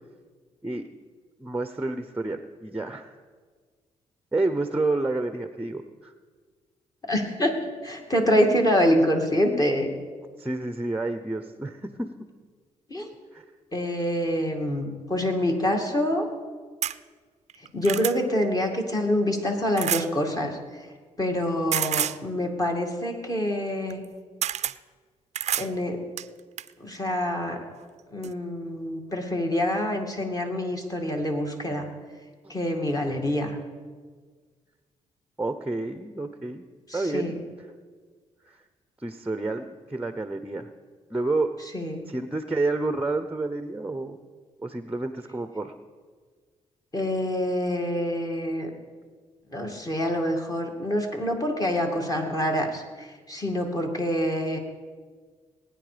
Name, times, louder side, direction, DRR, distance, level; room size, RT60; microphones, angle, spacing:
voice 1, 1.4-3.2 4.3-6.1 10.4-12.1 13.3-13.5 27.0-27.1 32.4-32.5 35.4-36.6 36.9-37.3 38.4-38.6 39.0-40.7 41.1-41.5 42.1-44.2 44.6-45.7, right 2 dB, 10° right, 9 dB, 0.7 m, -29 dB
voice 2, 7.1-7.6 7.8-9.9 12.9-13.1 13.7-16.3 17.7-20.6 21.2-24.0 25.6-26.0 26.8-27.6 28.1-31.8 32.5-33.6 36.9-37.4 41.7-42.0 46.9-48.7 49.5-54.6, left 1 dB, 30° left, 2 dB, 2.3 m, -26 dB
sound 1, 16.8-17.0 17.5-18.2 19.8-20.1 21.7-22.2 23.9-24.0 24.4-24.8 25.3-25.7 26.2-26.7 27.7-27.8 28.2-28.3, right 11 dB, 60° right, 0.4 m, -28 dB
20.0 x 9.6 x 5.1 m, 1.5 s
cardioid pair, 90°, 13 cm